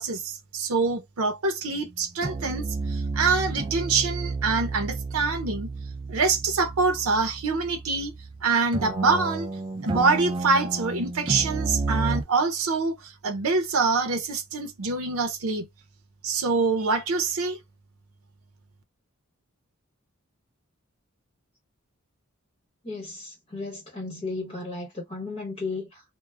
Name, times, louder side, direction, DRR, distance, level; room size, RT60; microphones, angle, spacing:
voice 1, 0.0-5.7 6.1-8.1 8.4-9.5 9.8-15.7 16.2-17.6, right 4 dB, 85° right, 0.6 m, -25 dB
sound 1, 1.7-1.9 2.2-8.4 8.7-12.2, right 3 dB, 25° right, 0.3 m, -31 dB
voice 2, 22.8-26.0, left 3 dB, 25° left, 1.0 m, -34 dB
2.3 x 2.0 x 3.2 m
head